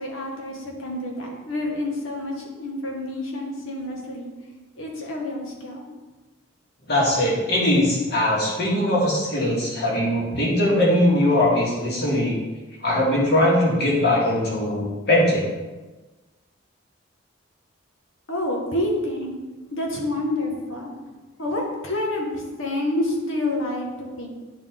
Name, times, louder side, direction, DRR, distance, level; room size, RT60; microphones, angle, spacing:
voice 1, 0.0-4.3 4.7-5.9 18.3-19.4 19.7-20.9 21.4-24.3, left 1 dB, 80° left, -1 dB, 1.6 m, -28 dB
voice 2, 6.9-12.4 12.8-15.4, left 1 dB, 55° left, -4 dB, 2.2 m, -20 dB
9.8 x 4.5 x 3.7 m, 1.2 s
head